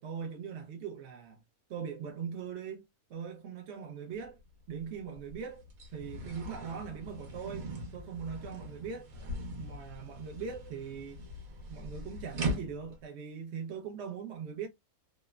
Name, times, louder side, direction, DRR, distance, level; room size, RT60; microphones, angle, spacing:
voice 1, 0.0-1.4 1.7-2.8 3.1-4.4 4.7-5.6 5.9-9.1 9.6-11.2 11.7-14.7, right 7 dB, 65° right, 0.7 m, -41 dB
sound 1, 4.1-4.3 4.7-13.0, right 1 dB, 80° right, 1.3 m, -41 dB
3.0 x 2.0 x 2.2 m
omnidirectional pair, 1.5 m